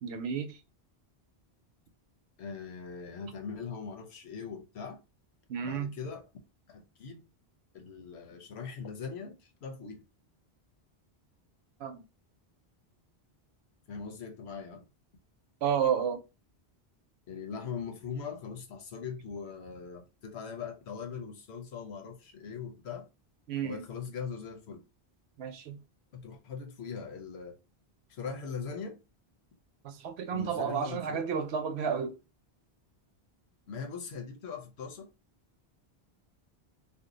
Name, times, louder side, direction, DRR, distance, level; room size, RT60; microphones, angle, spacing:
voice 1, 0.0-0.6 5.5-5.9 11.8-12.0 15.6-16.2 23.5-23.8 25.4-25.8 29.8-32.2, right 7 dB, 80° right, 0.9 m, -31 dB
voice 2, 2.4-5.0 5.6-6.2 6.7-7.2 7.7-10.0 13.9-14.8 17.3-23.1 23.6-24.9 26.1-27.6 28.1-29.0 30.3-31.2 33.7-35.1, left 6 dB, 80° left, 1.0 m, -41 dB
2.7 x 2.1 x 3.8 m
omnidirectional pair, 1.1 m